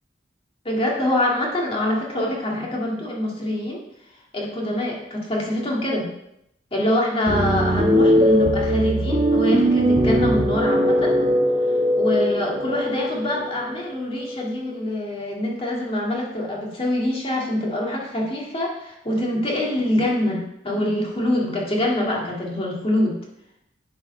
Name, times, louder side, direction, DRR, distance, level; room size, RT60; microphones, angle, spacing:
voice 1, 0.6-3.8 4.3-6.1 6.7-11.2 12.0-23.1, left 1 dB, 30° left, -2 dB, 1.9 m, -24 dB
sound 1, 7.3-14.7, equal, 30° right, 1.2 m, -20 dB
11.0 x 4.5 x 4.4 m, 0.79 s
head